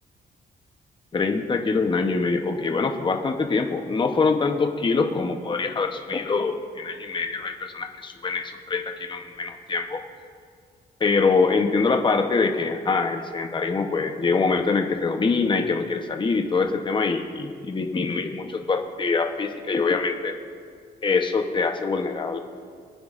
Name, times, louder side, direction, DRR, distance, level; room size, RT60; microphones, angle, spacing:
voice 1, 1.1-10.0 11.0-20.4 21.0-22.4, left 4 dB, 30° left, 5 dB, 0.8 m, -24 dB
24.5 x 9.3 x 2.5 m, 2.2 s
cardioid pair, 135°, 17 cm